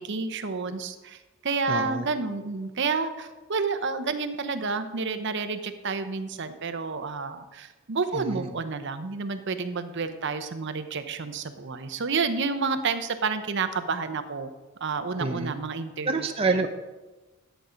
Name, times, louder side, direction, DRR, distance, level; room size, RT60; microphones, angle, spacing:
voice 1, 0.0-14.5 14.8-16.1, right 4 dB, 60° right, 9 dB, 0.8 m, -30 dB
voice 2, 1.7-2.1 8.1-8.5 15.2-15.5 16.0-16.7, right 3 dB, 30° right, 4 dB, 0.6 m, -27 dB
11.0 x 8.1 x 5.1 m, 1.2 s
head